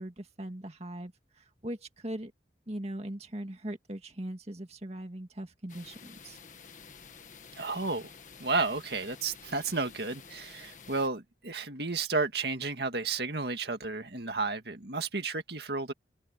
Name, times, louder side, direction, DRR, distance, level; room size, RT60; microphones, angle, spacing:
voice 1, 0.0-2.3 2.7-6.4, right 1 dB, 35° right, 2.1 m, -40 dB
sound 1, 5.7-11.1, left 6 dB, 40° left, 1.7 m, -51 dB
voice 2, 7.6-8.1 8.4-15.9, right 3 dB, 60° right, 2.1 m, -32 dB
head